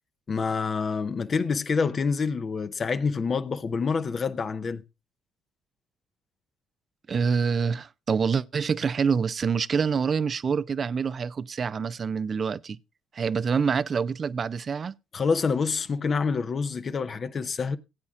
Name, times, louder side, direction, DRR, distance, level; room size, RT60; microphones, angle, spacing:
voice 1, 0.3-4.8 15.1-17.8, left 5 dB, 45° left, 0.9 m, -27 dB
voice 2, 7.1-12.8 13.1-14.9, right 6 dB, 45° right, 0.5 m, -26 dB
18.0 x 8.5 x 2.4 m
hypercardioid pair, 55°, 0 cm